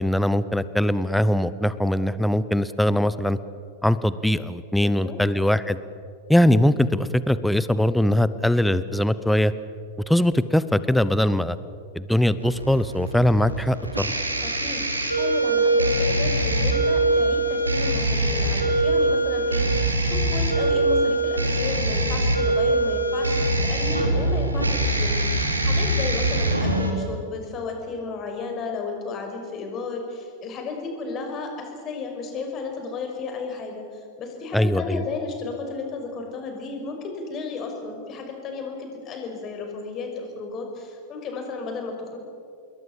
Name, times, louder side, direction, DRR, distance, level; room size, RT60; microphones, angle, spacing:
voice 1, 0.0-3.4 3.8-5.8 6.3-9.5 10.1-11.6 11.9-14.1 34.5-35.0, left 1 dB, ahead, 15 dB, 0.9 m, -21 dB
voice 2, 4.8-5.2 14.4-42.2, left 4 dB, 30° left, 3 dB, 5.7 m, -33 dB
sound 1, 12.4-26.9, right 1 dB, 80° right, 3.1 m, -23 dB
27.5 x 22.0 x 7.6 m, 2.4 s
figure-of-eight pair, 90°, 0 cm